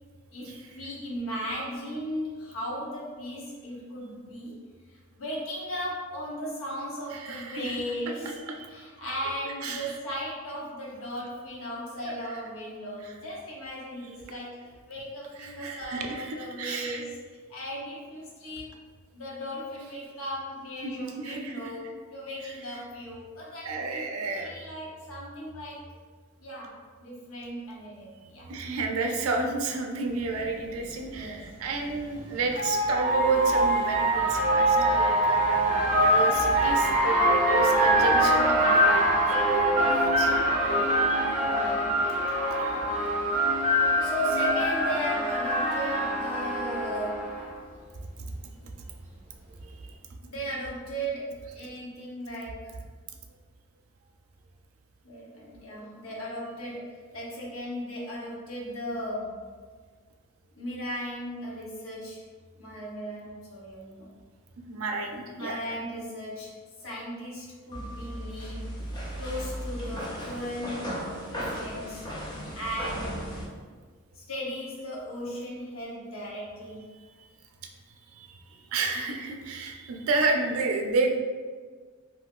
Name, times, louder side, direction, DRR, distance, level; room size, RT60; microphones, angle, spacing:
voice 1, 0.3-4.6 4.9-8.4 8.7-14.6 14.9-17.2 17.5-18.7 19.1-24.0 24.4-25.8 26.4-28.5 30.8-31.4 34.7-35.0 41.3-41.9 44.0-47.3 50.2-52.8 55.0-59.5 60.5-62.2 62.6-64.1 65.3-68.7 69.2-71.0 71.3-72.0 72.5-73.2 74.1-76.9, equal, 75° left, -5 dB, 0.8 m, -36 dB
voice 2, 7.1-7.8 8.5-8.7 9.6-10.0 12.1-12.2 15.4-17.0 20.8-21.7 23.6-24.7 28.2-40.3 42.6-42.8 48.6-48.7 49.6-49.9 64.7-65.8 78.1-81.2, right 3 dB, 85° right, 3 dB, 0.4 m, -31 dB
sound 1, 30.4-30.5 31.9-47.5, right 1 dB, 35° right, 0.6 m, -24 dB
sound 2, 67.7-73.5, equal, 20° left, 0.7 m, -36 dB
2.6 x 2.3 x 3.5 m, 1.5 s
head